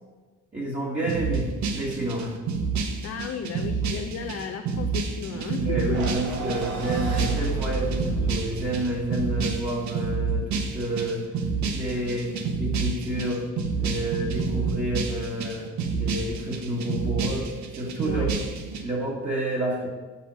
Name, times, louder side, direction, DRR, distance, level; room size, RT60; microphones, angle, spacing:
voice 1, 0.5-2.3 5.6-11.2 11.6-13.5 13.8-15.7 15.9-18.3 18.8-19.9, right 1 dB, 25° right, -6 dB, 1.7 m, -29 dB
sound 1, 1.1-18.8, right 5 dB, 70° right, 1.1 m, -29 dB
voice 2, 3.0-5.8 18.0-18.3, left 7 dB, 55° left, 4 dB, 0.7 m, -35 dB
sound 2, 5.9-10.3, right 3 dB, 85° right, 1.4 m, -32 dB
5.6 x 5.6 x 6.2 m, 1.3 s
cardioid pair, 90°, 30 cm